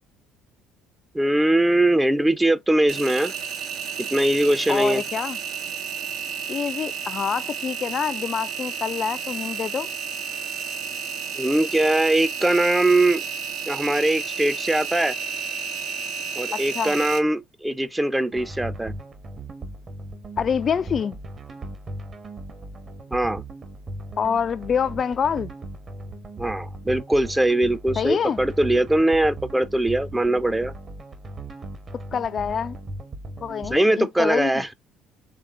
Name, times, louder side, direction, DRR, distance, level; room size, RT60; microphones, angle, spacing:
voice 1, 1.1-3.3 4.0-5.0 11.4-13.2 13.7-15.2 16.4-18.9 23.1-23.4 26.4-30.7 33.7-34.7, right 1 dB, 10° right, 0.5 m, -21 dB
Engine, 2.9-17.2, right 6 dB, 60° right, 0.7 m, -31 dB
voice 2, 4.7-5.4 6.5-9.9 16.5-16.9 20.4-21.2 24.2-25.5 28.0-28.4 32.1-32.8 33.4-34.6, left 7 dB, 40° left, 0.3 m, -26 dB
sound 1, 18.3-33.8, right 1 dB, 35° right, 1.1 m, -38 dB
4.8 x 3.5 x 2.4 m
figure-of-eight pair, 55°, 0 cm